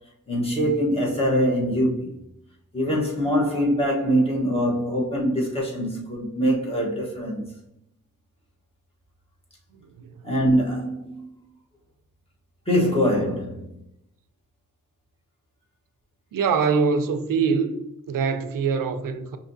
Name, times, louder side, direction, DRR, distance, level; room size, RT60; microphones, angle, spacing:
voice 1, 0.3-2.2 2.7-7.6 10.2-11.3 12.7-13.8, equal, 20° left, 1.1 m, -23 dB
voice 2, 16.3-17.8 18.1-19.4, right 5 dB, 90° right, 0.5 m, -23 dB
5.3 x 2.7 x 2.6 m
wide cardioid pair, 135°, 32 cm